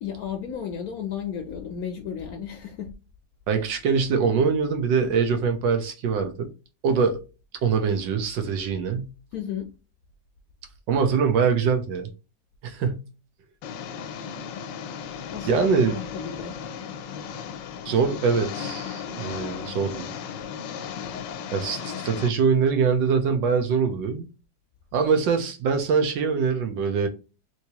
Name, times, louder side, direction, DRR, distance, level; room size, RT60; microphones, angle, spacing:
voice 1, 0.0-2.9 9.3-9.7 15.3-16.6, left 8 dB, 70° left, 0.9 m, -33 dB
voice 2, 3.5-6.5 6.8-7.2 7.6-9.1 10.9-12.1 12.6-13.0 15.4-15.9 17.8-20.1 21.5-24.3 24.9-27.1, right 5 dB, 90° right, 1.5 m, -23 dB
Engine, 13.6-22.3, left 7 dB, 85° left, 1.3 m, -35 dB
3.5 x 3.0 x 2.8 m
omnidirectional pair, 1.9 m